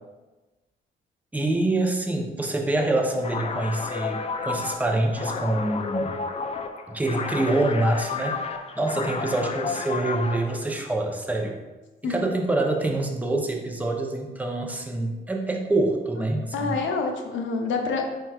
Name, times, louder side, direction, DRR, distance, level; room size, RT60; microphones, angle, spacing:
voice 1, 1.3-6.1 6.9-8.4 8.8-11.6 12.1-16.7, right 2 dB, 10° right, 1 dB, 0.6 m, -26 dB
sound 1, 3.2-10.6, left 5 dB, 30° left, 0.4 m, -31 dB
voice 2, 16.5-18.1, left 4 dB, 75° left, 3 dB, 0.7 m, -27 dB
4.5 x 4.4 x 2.4 m, 1.2 s
cardioid pair, 90°, 20 cm